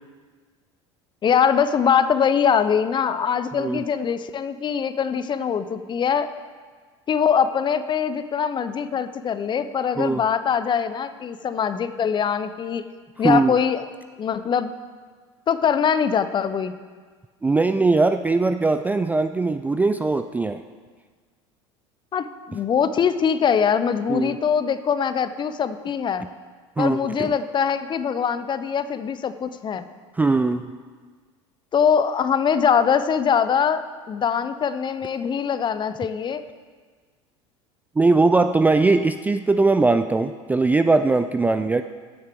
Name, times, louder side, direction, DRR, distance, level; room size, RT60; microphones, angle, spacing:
voice 1, 1.2-6.3 7.1-12.9 13.2-13.8 14.2-14.7 15.5-16.7 22.1-26.3 26.8-29.9 31.7-36.4, left 7 dB, 30° left, 12 dB, 0.6 m, -22 dB
voice 2, 13.2-13.5 17.4-20.6 24.1-24.4 26.8-27.3 30.2-30.7 38.0-41.8, right 3 dB, 10° right, 9 dB, 0.3 m, -20 dB
15.0 x 6.6 x 3.5 m, 1.5 s
hypercardioid pair, 80°, 16 cm